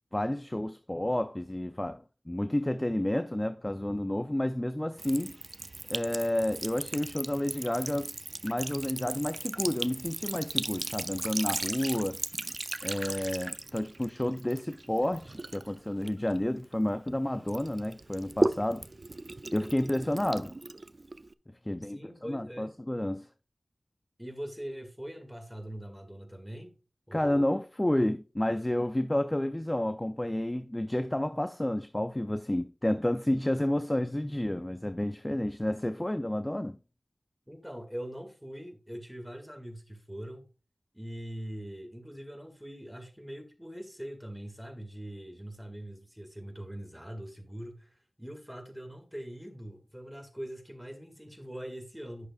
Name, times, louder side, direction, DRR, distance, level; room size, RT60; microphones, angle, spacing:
voice 1, 0.1-5.4 5.9-8.1 8.4-12.2 12.8-18.9 19.5-20.5 21.6-23.3 27.1-36.8, left 1 dB, 20° left, 0.4 m, -30 dB
Sink (filling or washing) / Trickle dribble, 5.0-17.1 17.5-21.3, right 2 dB, 50° right, 0.4 m, -37 dB
voice 2, 21.7-22.7 24.2-26.7 27.1-27.4 37.5-40.5 40.9-52.3, equal, ahead, 2.1 m, -42 dB
11.0 x 6.2 x 2.4 m
wide cardioid pair, 45°, 0 cm